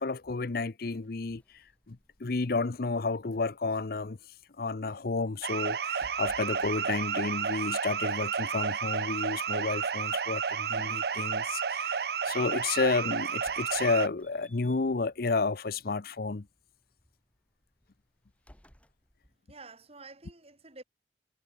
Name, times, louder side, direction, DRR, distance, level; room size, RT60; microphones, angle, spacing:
voice 1, 0.0-1.4 1.9-4.2 4.6-16.5, left 3 dB, 55° left, 0.7 m, -31 dB
sound 1, 0.9-19.4, equal, 10° left, 3.5 m, -64 dB
sound 2, 5.4-14.1, right 6 dB, 60° right, 0.7 m, -31 dB
voice 2, 19.5-20.8, right 3 dB, 35° right, 4.5 m, -49 dB
head